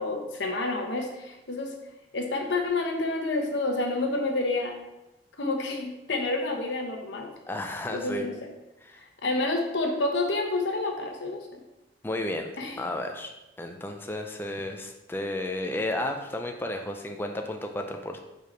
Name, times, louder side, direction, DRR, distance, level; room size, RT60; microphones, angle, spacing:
voice 1, 0.0-1.8 2.1-4.8 5.4-7.3 7.9-8.4 9.2-11.6 12.6-12.8, left 2 dB, 85° left, 3 dB, 1.0 m, -29 dB
voice 2, 7.5-8.3 8.8-9.0 12.0-12.5 12.8-13.3 13.6-18.2, left 1 dB, 10° left, 4 dB, 0.4 m, -32 dB
5.0 x 4.8 x 4.5 m, 0.97 s
head